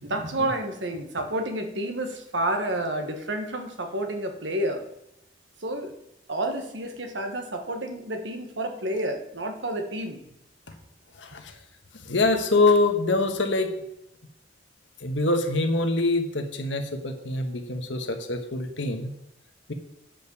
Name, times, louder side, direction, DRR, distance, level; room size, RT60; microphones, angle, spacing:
voice 1, 0.0-4.8 5.6-5.9 6.3-10.2, right 1 dB, 85° right, 5 dB, 1.4 m, -30 dB
voice 2, 11.2-11.6 12.0-13.7 15.0-19.1 19.7-19.8, left 2 dB, 90° left, 5 dB, 1.3 m, -24 dB
9.1 x 5.1 x 7.1 m, 0.84 s
head